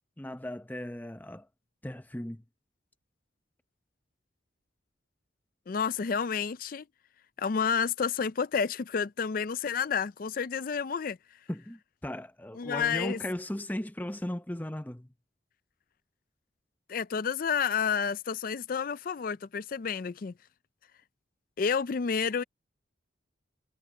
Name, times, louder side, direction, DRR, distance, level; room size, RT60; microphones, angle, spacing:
voice 1, 0.2-1.5 1.8-2.4 11.5-15.1, left 1 dB, 10° left, 0.8 m, -37 dB
voice 2, 5.7-6.8 7.4-11.2 12.6-13.2 16.9-20.3 21.6-22.4, left 6 dB, 50° left, 0.4 m, -30 dB
head